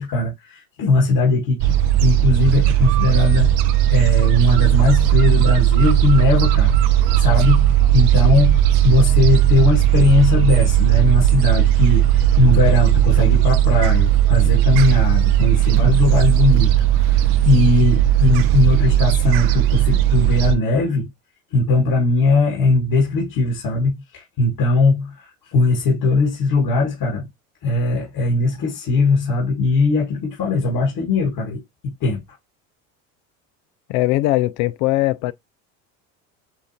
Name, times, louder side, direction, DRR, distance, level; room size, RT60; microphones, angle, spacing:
voice 1, 0.0-3.5 3.9-6.8 7.2-21.1 21.5-27.3 27.6-32.2, left 2 dB, 50° left, 1.8 m, -19 dB
Gull seagull, 1.6-20.5, right 12 dB, 65° right, 0.8 m, -16 dB
voice 2, 33.9-35.3, left 17 dB, 65° left, 0.5 m, -20 dB
7.3 x 2.5 x 2.8 m
supercardioid pair, 90°, 42 cm